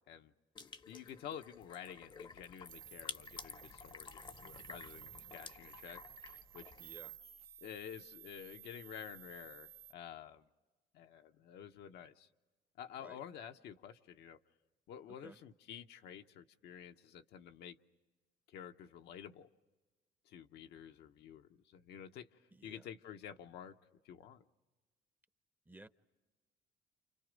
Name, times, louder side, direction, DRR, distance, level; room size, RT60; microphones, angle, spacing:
sound 1, 0.6-7.2, left 5 dB, 30° left, 0.8 m, -52 dB
voice 1, 0.9-6.0 6.3-6.7 7.6-10.5 10.9-12.3 12.8-14.4 14.9-17.8 18.5-19.5 20.3-23.8 24.0-24.4, left 9 dB, 75° left, 0.9 m, -50 dB
sound 2, 2.7-9.9, right 11 dB, 65° right, 0.7 m, -55 dB
voice 2, 6.8-7.2 13.0-13.2 15.1-15.4 22.5-22.9 25.7-25.9, right 2 dB, 10° right, 0.7 m, -56 dB
29.5 x 28.5 x 5.2 m
cardioid pair, 110°, 17 cm